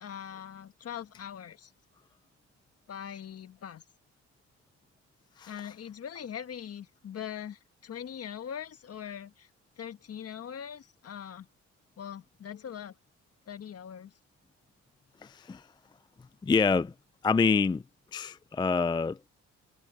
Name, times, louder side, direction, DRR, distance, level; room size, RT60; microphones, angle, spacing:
voice 1, 0.0-1.7 2.9-3.8 5.5-9.5 9.8-11.5 12.0-12.9 13.5-14.1, left 9 dB, 50° left, 1.5 m, -41 dB
voice 2, 15.2-15.6 16.4-16.9 17.2-17.8 18.1-19.3, left 4 dB, 15° left, 0.4 m, -26 dB
cardioid pair, 90°, 30 cm